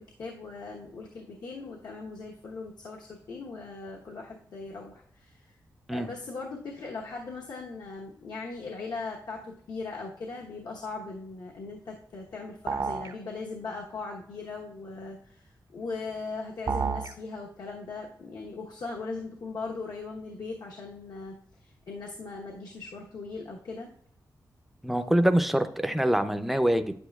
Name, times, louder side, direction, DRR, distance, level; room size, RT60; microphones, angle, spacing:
voice 1, 0.0-5.6 5.9-23.9, left 3 dB, 70° left, -1 dB, 1.0 m, -39 dB
sound 1, 12.7-13.1 16.7-17.1, right 5 dB, 55° right, 0.6 m, -29 dB
voice 2, 24.8-26.9, right 1 dB, ahead, 9 dB, 0.5 m, -24 dB
9.7 x 8.2 x 2.3 m, 0.65 s
wide cardioid pair, 120°, 7 cm